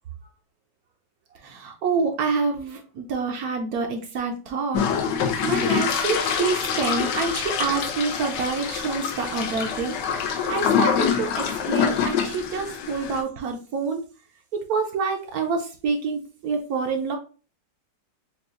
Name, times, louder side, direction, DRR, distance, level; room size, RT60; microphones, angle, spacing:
voice 1, 1.3-14.0 14.5-17.2, right 4 dB, 70° right, 3 dB, 1.0 m, -27 dB
sound 1, 4.7-13.2, left 7 dB, 80° left, 1.2 m, -25 dB
6.6 x 2.3 x 2.4 m, 0.37 s
omnidirectional pair, 1.9 m